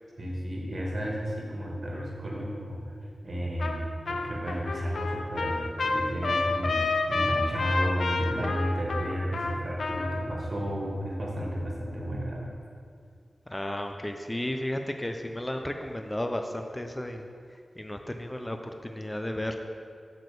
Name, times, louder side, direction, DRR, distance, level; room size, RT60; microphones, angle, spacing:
voice 1, 0.2-2.8 3.2-12.5, equal, 50° right, -3 dB, 1.8 m, -32 dB
Trumpet, 3.6-3.8 4.1-10.3, left 3 dB, 85° left, 0.6 m, -29 dB
voice 2, 13.5-17.3 17.8-19.6, left 1 dB, 15° left, 5 dB, 0.5 m, -33 dB
7.7 x 4.8 x 6.7 m, 2.3 s
wide cardioid pair, 85°, 0 cm